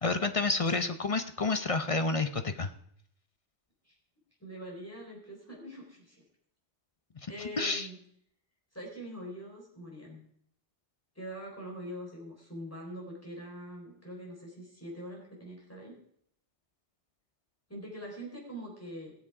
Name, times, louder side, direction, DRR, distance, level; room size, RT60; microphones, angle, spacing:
voice 1, 0.0-2.7 7.6-7.9, left 3 dB, 35° left, 9 dB, 0.6 m, -29 dB
voice 2, 4.4-6.2 7.3-8.0 8.7-10.2 11.2-16.0 17.7-19.1, equal, 10° left, -2 dB, 4.1 m, -43 dB
17.0 x 7.3 x 4.8 m, 0.69 s
omnidirectional pair, 1.2 m